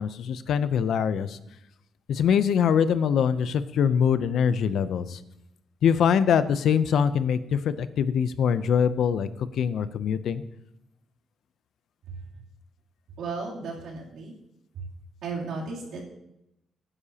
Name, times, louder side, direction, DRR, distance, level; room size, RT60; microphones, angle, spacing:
voice 1, 0.0-1.4 2.1-5.2 5.8-9.3 9.5-10.4, left 7 dB, 60° left, 13 dB, 0.5 m, -23 dB
voice 2, 13.2-14.3 14.7-14.8 15.2-16.0, right 4 dB, 85° right, -3 dB, 3.0 m, -34 dB
16.5 x 9.9 x 2.9 m, 0.84 s
cardioid pair, 165°, 0 cm